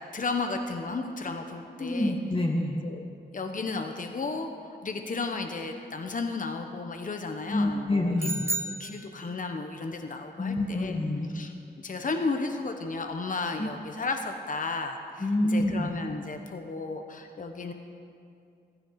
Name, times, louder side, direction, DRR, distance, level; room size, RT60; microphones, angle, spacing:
voice 1, 0.0-2.1 2.8-3.0 3.3-8.1 8.8-11.0 11.3-11.5 11.8-17.7, left 3 dB, 45° left, 5 dB, 1.1 m, -33 dB
voice 2, 1.8-2.9 7.5-8.4 10.4-11.3 13.6-13.7 15.2-15.9, left 1 dB, 30° left, 0 dB, 1.5 m, -27 dB
sound 1, 8.2-9.6, right 3 dB, 15° right, 0.5 m, -33 dB
15.5 x 15.5 x 4.8 m, 2.4 s
wide cardioid pair, 105°, 18 cm